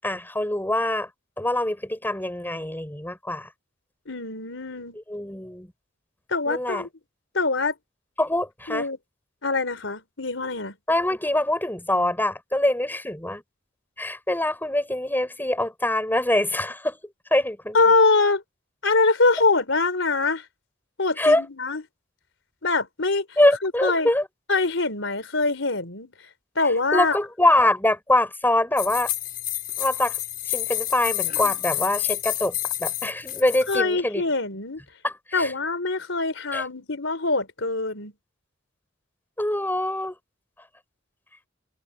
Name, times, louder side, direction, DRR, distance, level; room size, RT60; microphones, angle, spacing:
voice 1, 0.0-1.1 1.4-3.5 4.9-5.7 6.5-6.9 8.2-8.9 10.9-13.4 14.0-17.0 17.3-17.8 21.2-21.4 23.4-24.3 26.9-29.1 29.8-30.2 30.5-34.2 35.0-35.5 36.5-36.6 39.4-40.1, left 1 dB, 10° left, 6.2 m, -24 dB
voice 2, 4.1-5.0 6.3-6.9 7.3-7.7 8.7-9.0 9.4-10.8 17.7-18.4 18.8-20.4 21.0-21.8 22.6-23.3 23.6-24.1 24.5-26.1 26.6-27.2 33.7-34.8 35.3-38.1, left 3 dB, 85° left, 3.9 m, -23 dB
sound 1, 28.8-33.8, left 14 dB, 50° left, 6.6 m, -29 dB
head